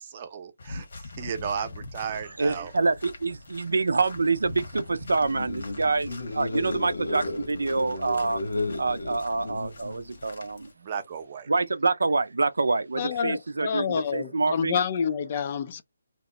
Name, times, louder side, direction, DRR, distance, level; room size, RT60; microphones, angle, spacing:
voice 1, 0.0-2.7 10.8-11.5, right 7 dB, 35° right, 0.7 m, -35 dB
sound 1, 0.6-10.7, left 3 dB, 60° left, 1.2 m, -44 dB
voice 2, 2.1-8.4 8.8-10.7 11.5-14.8, right 3 dB, 85° right, 0.5 m, -26 dB
sound 2, 5.1-10.2, left 2 dB, 85° left, 1.0 m, -34 dB
voice 3, 13.0-15.8, left 7 dB, 35° left, 0.4 m, -28 dB
2.9 x 2.1 x 3.6 m
hypercardioid pair, 160°, 0 cm